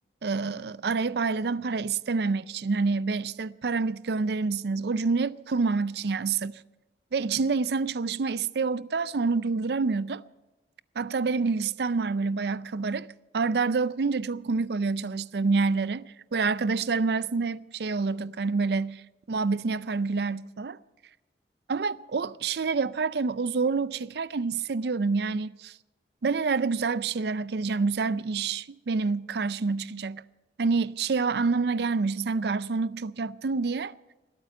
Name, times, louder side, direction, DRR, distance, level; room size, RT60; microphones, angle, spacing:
voice 1, 0.2-6.6 7.1-10.2 11.0-13.1 13.3-16.0 16.3-20.8 21.7-25.8 26.2-30.2 30.6-33.9, right 4 dB, 65° right, 0.5 m, -27 dB
20.0 x 8.9 x 7.0 m
head